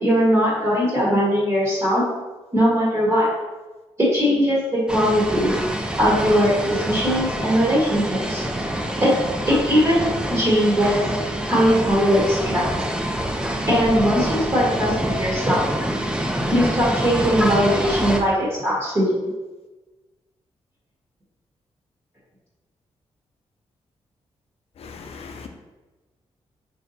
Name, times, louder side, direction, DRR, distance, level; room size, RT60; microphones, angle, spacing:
voice 1, 0.0-2.0 2.5-3.3 4.0-5.6 6.0-8.4 9.0-9.1 9.5-11.0 11.5-12.7 13.7-15.6 16.5-19.2, equal, 25° right, -6 dB, 1.0 m, -20 dB
sound 1, 4.9-18.2, right 1 dB, 10° right, 0.4 m, -26 dB
voice 2, 24.8-25.5, left 5 dB, 65° left, 5 dB, 0.4 m, -38 dB
2.7 x 2.1 x 3.9 m, 1.2 s
cardioid pair, 90°, 11 cm